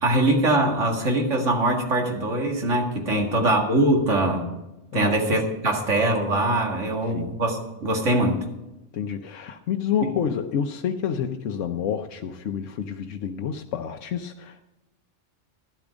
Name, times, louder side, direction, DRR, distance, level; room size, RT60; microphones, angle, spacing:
voice 1, 0.0-4.4 4.9-8.4 10.0-10.1, right 1 dB, 80° right, 2 dB, 2.3 m, -22 dB
voice 2, 3.1-3.5 4.9-5.4 6.9-7.3 8.9-14.7, left 8 dB, 85° left, 4 dB, 1.1 m, -29 dB
12.0 x 11.5 x 5.1 m, 1.0 s
omnidirectional pair, 1.2 m